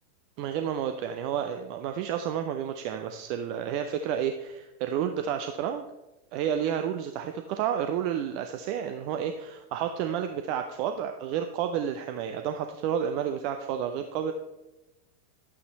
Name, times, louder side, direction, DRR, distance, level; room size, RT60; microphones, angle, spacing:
voice 1, 0.4-5.8 6.3-14.3, right 9 dB, 45° right, 6 dB, 0.7 m, -30 dB
11.0 x 8.5 x 4.1 m, 0.98 s
figure-of-eight pair, 90°, 0 cm